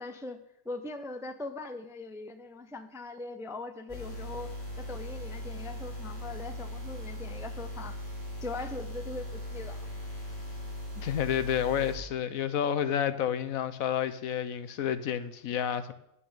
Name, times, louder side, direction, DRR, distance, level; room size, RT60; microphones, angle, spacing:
voice 1, 0.0-8.0 8.4-9.9, left 2 dB, 5° right, 0.5 m, -41 dB
sound 1, 3.9-12.0, left 1 dB, 20° left, 5.1 m, -39 dB
voice 2, 11.0-15.9, left 9 dB, 75° left, 1.2 m, -30 dB
10.0 x 9.4 x 7.4 m
omnidirectional pair, 1.5 m